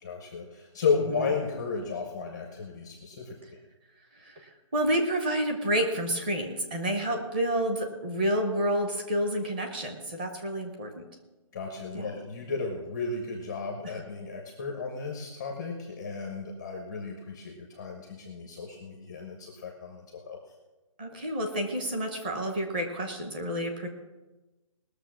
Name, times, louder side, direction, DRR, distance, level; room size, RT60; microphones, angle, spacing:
voice 1, 0.0-3.4 11.5-20.4, left 4 dB, 10° left, 1 dB, 0.6 m, -33 dB
voice 2, 4.2-11.0 11.9-12.1 13.8-14.0 21.0-23.9, right 1 dB, 15° right, 4 dB, 0.9 m, -29 dB
19.0 x 6.6 x 6.2 m, 1.1 s
hypercardioid pair, 180°, 18 cm